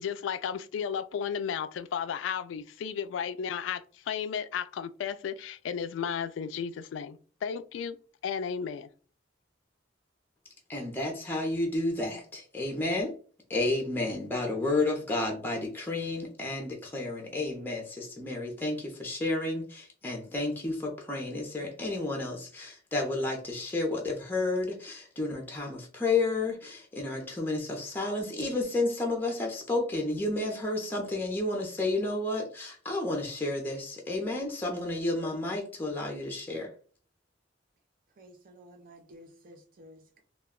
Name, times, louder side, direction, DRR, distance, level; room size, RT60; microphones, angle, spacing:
voice 1, 0.0-8.0 8.2-8.9, left 7 dB, 85° left, 0.3 m, -34 dB
voice 2, 10.7-13.1 13.5-36.7, left 2 dB, 10° left, 0.5 m, -31 dB
voice 3, 38.2-40.2, equal, 50° right, 0.5 m, -53 dB
2.3 x 2.2 x 3.5 m
head